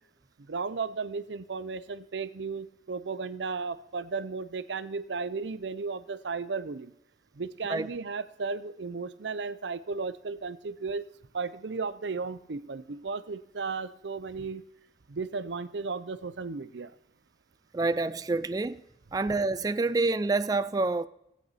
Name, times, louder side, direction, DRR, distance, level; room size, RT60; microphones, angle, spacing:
voice 1, 0.5-6.9 7.4-11.0 11.3-14.6 15.1-16.9, right 4 dB, 85° right, 0.6 m, -35 dB
voice 2, 17.7-18.8 19.1-21.1, right 3 dB, 20° right, 0.3 m, -27 dB
18.0 x 8.5 x 4.1 m
head